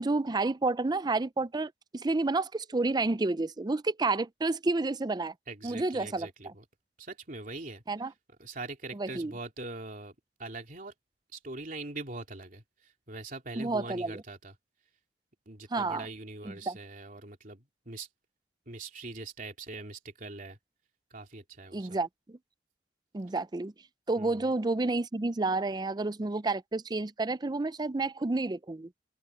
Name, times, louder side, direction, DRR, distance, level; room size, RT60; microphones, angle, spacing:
voice 1, 0.0-5.3 5.6-6.5 7.9-8.1 8.9-9.3 13.6-14.2 15.7-16.1 16.4-16.8 21.7-22.4 23.1-23.7 24.1-28.9, right 3 dB, 25° right, 0.5 m, -30 dB
voice 2, 5.5-6.6 7.0-7.8 8.4-10.1 10.4-10.9 11.3-12.6 13.1-14.5 15.5-18.1 18.7-20.6 21.1-21.9 24.2-24.4, right 2 dB, 50° right, 3.2 m, -42 dB
head